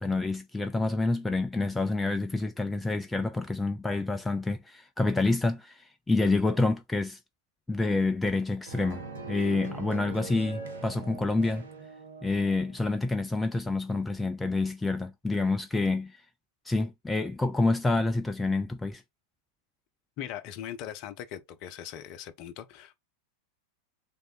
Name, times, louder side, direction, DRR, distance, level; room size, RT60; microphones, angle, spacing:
voice 1, 0.0-7.2 7.7-11.7 12.2-16.2 16.7-19.0, left 3 dB, 10° left, 0.4 m, -28 dB
sound 1, 8.7-12.8, right 3 dB, 65° right, 1.0 m, -41 dB
voice 2, 20.2-23.0, left 10 dB, 40° left, 0.7 m, -40 dB
3.8 x 3.4 x 3.9 m
figure-of-eight pair, 90°, 0 cm